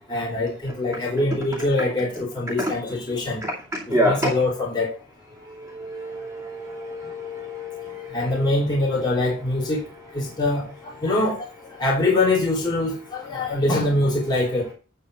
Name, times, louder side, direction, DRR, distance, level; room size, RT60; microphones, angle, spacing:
voice 1, 0.1-3.4 4.0-4.9 8.1-9.8 10.1-11.5 11.8-14.7, left 2 dB, 20° left, -5 dB, 3.2 m, -23 dB
voice 2, 3.9-4.3 5.6-8.5, equal, 10° right, -4 dB, 2.6 m, -27 dB
11.0 x 4.4 x 6.2 m, 0.35 s
head